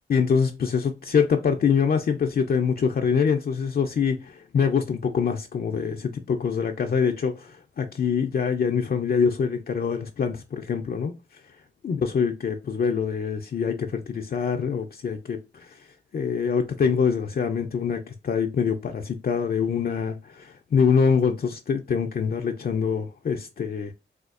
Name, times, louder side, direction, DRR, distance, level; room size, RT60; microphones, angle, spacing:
voice 1, 0.1-11.1 11.8-15.7 16.1-23.9, left 6 dB, 50° left, 0.5 m, -24 dB
4.2 x 2.3 x 2.4 m
cardioid pair, 90°, 20 cm